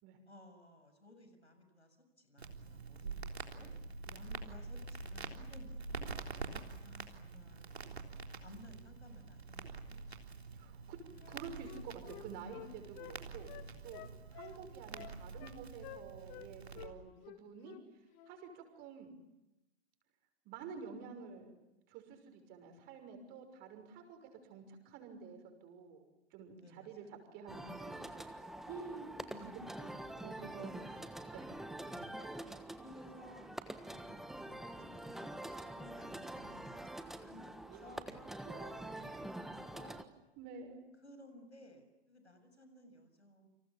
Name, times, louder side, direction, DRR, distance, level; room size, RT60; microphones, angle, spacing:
voice 1, 0.3-3.7 4.1-6.1 6.8-7.7 8.4-10.2 11.2-11.6 13.6-13.8 14.1-14.6 26.6-27.1 29.3-29.9 30.3-30.8 31.9-32.4 32.8-38.2 38.5-40.0 41.0-43.5, left 1 dB, 80° left, 8 dB, 7.1 m, -58 dB
Crackle, 2.4-16.9, right 4 dB, 70° right, 3.6 m, -47 dB
voice 2, 10.5-11.0 11.3-13.6 13.8-14.0 14.4-17.8 18.3-19.1 20.4-21.5 21.9-26.0 26.3-27.0 27.3-28.1 28.4-29.2 29.4-31.0 31.3-31.5 37.7-38.1 38.5-39.2 40.4-40.8, right 6 dB, 30° right, 6 dB, 6.0 m, -50 dB
Wind instrument woodwind instrument, 11.2-13.2 13.5-14.6 14.9-15.6 15.8-16.5 16.7-16.9 17.2-17.8 18.1-18.3, left 14 dB, 30° left, 2.1 m, -51 dB
sound 1, 27.5-40.0, right 1 dB, ahead, 1.3 m, -46 dB
30.0 x 26.5 x 7.4 m, 0.97 s
figure-of-eight pair, 115°, 33 cm